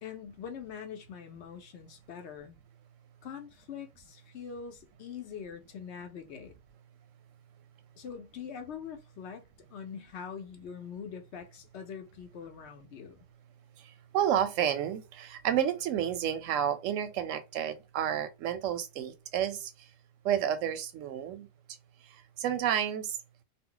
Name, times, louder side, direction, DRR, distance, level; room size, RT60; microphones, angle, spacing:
voice 1, 0.0-2.6 3.2-6.5 8.0-13.2, left 7 dB, 70° left, 0.9 m, -43 dB
voice 2, 13.8-19.9 20.2-21.5 22.0-23.2, right 9 dB, 90° right, 0.9 m, -31 dB
2.4 x 2.1 x 3.7 m
omnidirectional pair, 1.3 m